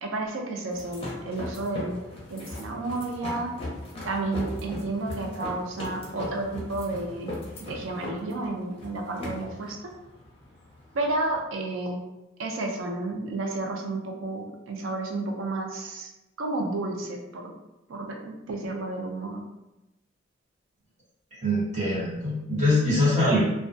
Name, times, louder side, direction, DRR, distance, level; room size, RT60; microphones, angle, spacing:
voice 1, 0.0-2.0 2.3-3.5 4.0-7.3 7.7-9.8 10.9-12.0 12.4-16.1 16.4-17.5 17.9-19.4, right 2 dB, 80° right, 2 dB, 0.4 m, -31 dB
sound 1, 0.7-11.4, left 1 dB, 30° left, 0.6 m, -38 dB
voice 2, 21.4-23.4, left 1 dB, 35° right, -12 dB, 1.1 m, -23 dB
2.2 x 2.1 x 2.6 m, 0.96 s
head